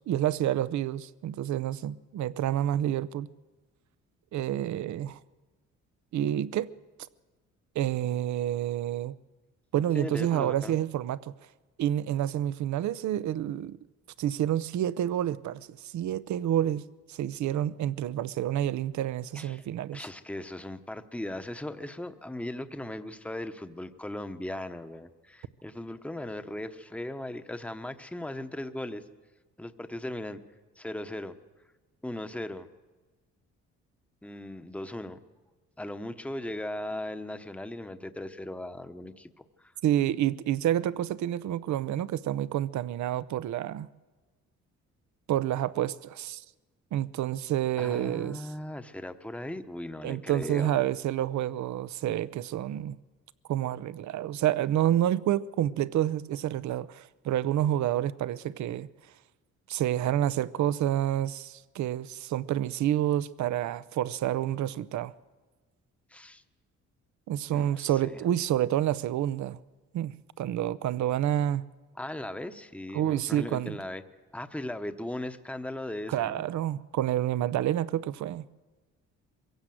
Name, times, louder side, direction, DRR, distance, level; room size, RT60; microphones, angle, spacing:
voice 1, 0.1-3.3 4.3-5.2 6.1-6.7 7.8-9.1 9.7-11.3 11.8-13.8 14.2-20.0 39.8-43.9 45.3-46.4 46.9-48.5 50.0-53.0 53.5-58.9 59.7-65.1 67.3-69.6 69.9-71.6 72.9-73.8 76.1-78.5, right 12 dB, 70° right, 0.7 m, -29 dB
voice 2, 9.9-10.8 19.3-19.7 19.9-29.0 29.6-30.4 30.8-31.4 32.0-32.7 34.2-35.2 35.8-39.7 47.8-50.8 66.1-66.4 67.5-68.2 72.0-74.0 74.3-76.5, left 1 dB, 5° left, 1.0 m, -38 dB
23.0 x 16.5 x 7.7 m
cardioid pair, 90°, 30 cm